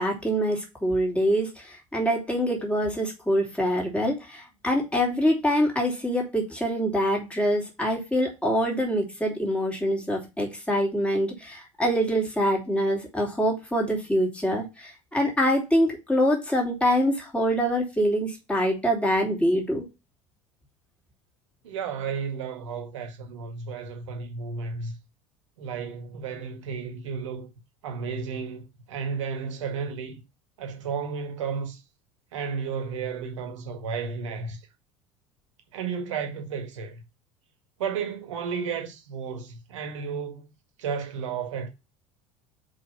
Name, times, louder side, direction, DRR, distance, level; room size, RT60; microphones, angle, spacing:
voice 1, 0.0-19.8, equal, 5° left, 3.0 m, -25 dB
voice 2, 21.6-24.9 25.6-27.5 27.8-30.2 30.6-31.8 32.3-34.6 35.7-37.0 37.8-40.5 40.8-41.7, right 6 dB, 65° right, 1.7 m, -33 dB
5.5 x 5.0 x 5.6 m
figure-of-eight pair, 70°, 17 cm